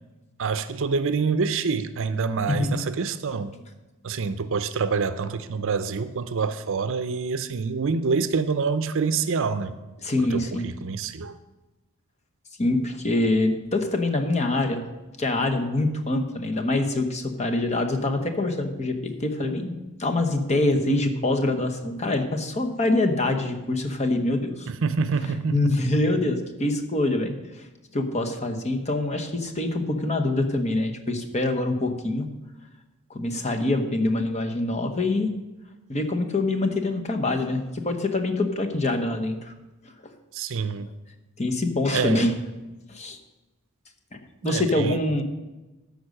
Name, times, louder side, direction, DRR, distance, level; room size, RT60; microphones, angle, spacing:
voice 1, 0.4-3.5 4.0-9.8 10.2-11.4 24.7-25.8 40.3-40.9 41.9-42.3 44.4-45.0, right 5 dB, 65° right, 12 dB, 0.6 m, -26 dB
voice 2, 10.0-10.7 12.6-14.9 15.2-24.7 25.2-27.7 27.9-32.3 33.1-35.3 35.9-39.5 41.4-42.3 42.9-43.2 44.1-45.2, left 2 dB, 30° left, 5 dB, 1.0 m, -25 dB
13.5 x 5.2 x 6.5 m, 1.1 s
head